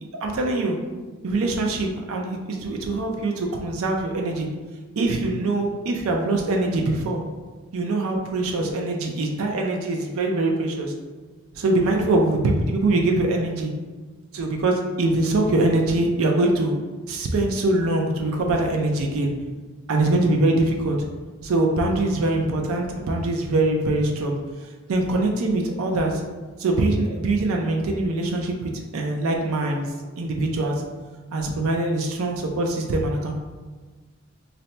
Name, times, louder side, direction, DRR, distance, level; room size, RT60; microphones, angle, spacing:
voice 1, 0.2-0.8 1.2-4.5 5.0-7.2 7.7-10.9 11.6-13.7 14.3-16.7 17.1-19.3 19.9-21.0 21.4-24.4 24.9-26.2 26.6-29.9 30.2-30.8 31.3-33.3, right 2 dB, 80° right, 1 dB, 0.4 m, -23 dB
2.7 x 2.1 x 4.0 m, 1.4 s
head